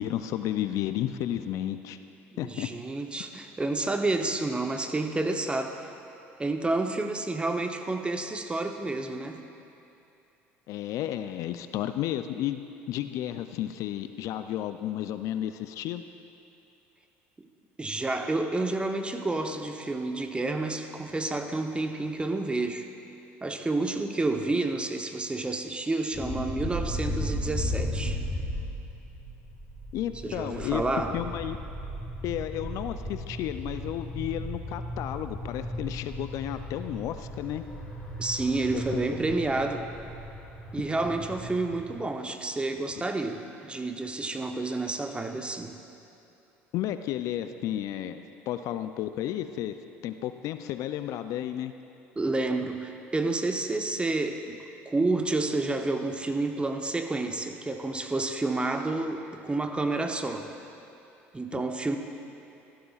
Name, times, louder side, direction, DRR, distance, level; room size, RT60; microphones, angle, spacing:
voice 1, 0.0-2.0 2.4-2.7 10.7-12.6 12.9-16.0 29.9-30.8 31.1-31.6 32.2-37.6 38.7-39.0 39.3-39.4 43.0-43.1 46.7-49.7 50.0-51.7 61.5-61.6, left 12 dB, 60° left, 10 dB, 0.4 m, -32 dB
voice 2, 2.3-5.9 6.4-9.4 17.8-22.8 23.4-28.2 30.2-31.2 38.2-39.8 40.7-45.8 52.2-60.5 61.3-62.0, right 2 dB, 15° right, 5 dB, 0.9 m, -29 dB
sound 1, 26.1-42.0, equal, 15° left, 2.6 m, -36 dB
14.5 x 12.5 x 2.4 m, 2.8 s
hypercardioid pair, 70°, 6 cm